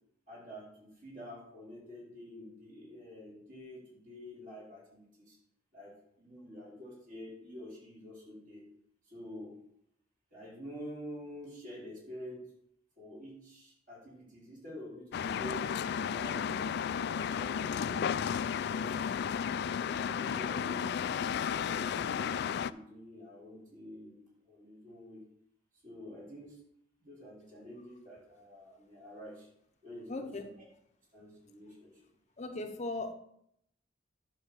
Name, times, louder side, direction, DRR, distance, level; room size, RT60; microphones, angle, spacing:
voice 1, 0.3-5.4 5.7-8.7 9.0-9.6 10.3-12.5 13.0-18.1 18.7-19.3 19.9-25.2 25.8-26.6 27.0-29.5 29.8-30.5 31.1-32.0, equal, 45° right, -5 dB, 4.0 m, -48 dB
sound 1, 15.1-22.7, left 7 dB, 60° left, 0.3 m, -33 dB
voice 2, 30.1-30.5 32.4-33.1, left 2 dB, 40° left, 5 dB, 0.8 m, -38 dB
10.5 x 3.8 x 6.9 m, 0.74 s
head